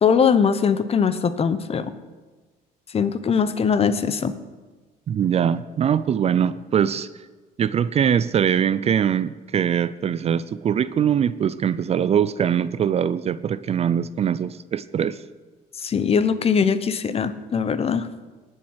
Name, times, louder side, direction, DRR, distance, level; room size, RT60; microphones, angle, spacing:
voice 1, 0.0-1.9 2.9-4.3 15.8-18.0, left 6 dB, 35° left, 13 dB, 0.8 m, -21 dB
voice 2, 5.1-7.1 7.6-15.2, right 8 dB, 40° right, 16 dB, 0.4 m, -22 dB
19.5 x 7.4 x 4.8 m, 1.3 s
cardioid pair, 110°, 17 cm